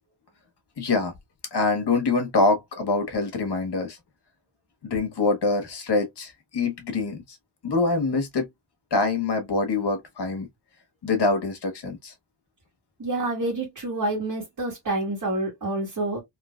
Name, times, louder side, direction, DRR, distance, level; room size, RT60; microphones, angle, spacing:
voice 1, 0.8-1.1 1.5-4.0 4.8-7.2 7.6-8.5 8.9-10.5 11.0-12.1, left 3 dB, 65° left, 1.2 m, -25 dB
voice 2, 13.0-16.2, right 2 dB, 50° right, 1.6 m, -28 dB
3.8 x 2.7 x 2.2 m
wide cardioid pair, 110°, 43 cm